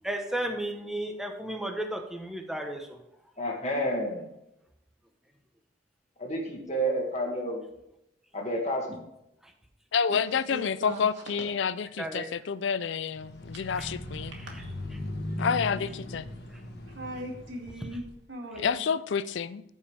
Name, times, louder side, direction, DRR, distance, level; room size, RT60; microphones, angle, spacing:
voice 1, 0.0-3.0 12.0-12.3 13.8-13.9 17.8-17.9, right 1 dB, ahead, 0.8 m, -33 dB
voice 2, 3.4-4.3 6.2-7.6 8.3-9.0, right 1 dB, 35° left, 2.0 m, -30 dB
voice 3, 9.9-14.3 15.4-16.3 18.6-19.6, left 6 dB, 70° left, 0.4 m, -29 dB
voice 4, 10.5-11.0 14.6-14.7 16.9-18.9, equal, 75° right, 2.3 m, -39 dB
sound 1, 13.1-18.1, left 1 dB, 55° left, 1.4 m, -38 dB
14.5 x 5.4 x 3.4 m
head